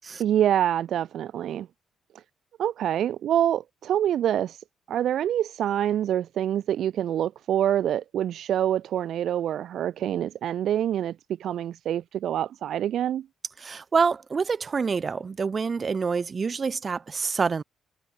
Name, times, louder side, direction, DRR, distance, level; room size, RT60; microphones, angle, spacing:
voice 1, 0.2-1.7 2.6-13.3, right 10 dB, 70° right, 2.0 m, -26 dB
voice 2, 13.6-17.6, right 5 dB, 35° right, 5.6 m, -27 dB
cardioid pair, 90°, 0 cm